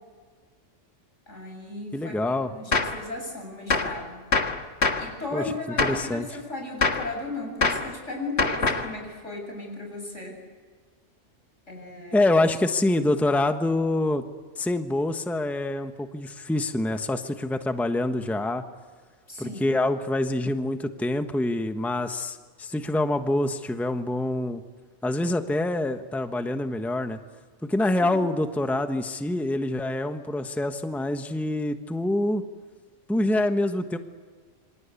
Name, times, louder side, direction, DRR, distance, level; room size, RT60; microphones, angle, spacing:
voice 1, 1.3-4.2 5.0-10.4 11.7-12.2 19.3-19.6 28.0-28.3, left 2 dB, 85° left, 2 dB, 7.8 m, -36 dB
voice 2, 1.9-2.5 5.3-5.4 5.8-6.3 12.1-14.3 14.6-18.6 19.4-24.6 25.0-27.2 27.6-32.4 33.1-34.0, left 2 dB, ahead, 7 dB, 1.1 m, -26 dB
Gunshot gunfire, 2.7-3.0 3.7-4.0 4.3-5.1 5.8-6.1 6.8-7.1 7.6-7.9 8.4-8.9, left 4 dB, 60° left, 1.9 m, -24 dB
27.5 x 25.5 x 8.4 m, 1.5 s
omnidirectional pair, 1.2 m